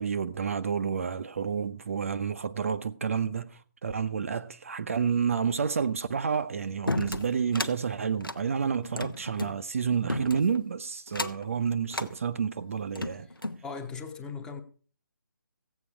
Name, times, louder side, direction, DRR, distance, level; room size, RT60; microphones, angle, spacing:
voice 1, 0.0-13.3, right 6 dB, 40° right, 0.5 m, -30 dB
sound 1, 6.9-7.8 8.2-9.6 10.1-10.6 11.1-11.5 11.9-12.1 12.7-13.6, left 1 dB, 90° left, 1.0 m, -33 dB
voice 2, 13.3-14.6, left 5 dB, 5° left, 0.8 m, -39 dB
15.5 x 8.3 x 4.9 m
figure-of-eight pair, 145°, 11 cm